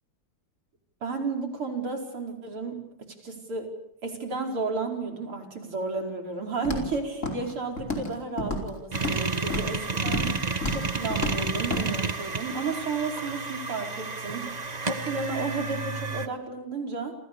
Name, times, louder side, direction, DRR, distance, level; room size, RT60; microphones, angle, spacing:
voice 1, 1.0-3.7 4.0-10.3 10.7-14.5 14.9-17.2, right 4 dB, 80° right, 3 dB, 5.8 m, -32 dB
Walk footsteps, 6.6-6.9 7.2-7.5 7.8-8.1 8.4-9.2 9.5-9.7 10.1-10.3 10.6-10.8 11.1-11.4 11.7-11.8, left 2 dB, 30° left, 5.2 m, -30 dB
sound 1, 8.9-16.3, right 4 dB, 25° right, 1.1 m, -31 dB
29.0 x 29.0 x 7.0 m, 0.76 s
omnidirectional pair, 2.4 m